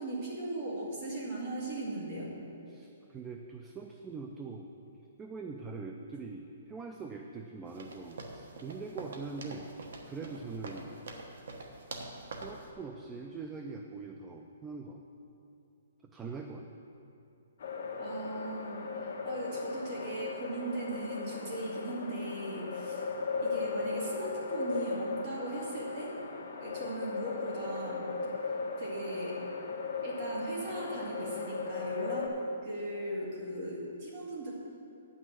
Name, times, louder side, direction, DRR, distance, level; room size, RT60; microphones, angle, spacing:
voice 1, 0.0-2.3 18.0-23.1 23.4-26.1 26.6-28.0 28.8-29.4 30.0-32.3 32.6-34.5, right 1 dB, 30° right, -5 dB, 2.3 m, -38 dB
voice 2, 2.7-4.7 5.2-9.7 10.1-11.0 12.4-15.0 16.1-16.6, right 4 dB, 10° right, 3 dB, 0.3 m, -43 dB
sound 1, 7.7-12.7, right 3 dB, 60° right, 1.2 m, -45 dB
sound 2, 17.6-32.3, left 4 dB, 50° left, 1.2 m, -37 dB
9.1 x 6.1 x 7.7 m, 2.7 s
hypercardioid pair, 180°, 0 cm